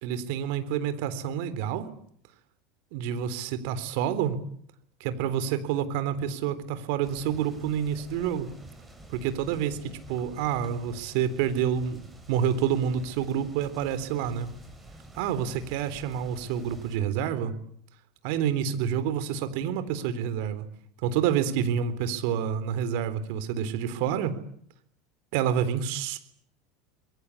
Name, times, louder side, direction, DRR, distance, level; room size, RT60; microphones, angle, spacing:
voice 1, 0.0-1.9 2.9-4.4 5.0-8.5 9.1-14.5 15.2-17.6 18.2-20.7 21.0-24.3 25.3-26.2, right 9 dB, 65° right, 13 dB, 3.7 m, -28 dB
sound 1, 7.0-17.0, right 1 dB, 10° right, 7.1 m, -49 dB
27.5 x 22.5 x 8.5 m, 0.66 s
hypercardioid pair, 90°, 0 cm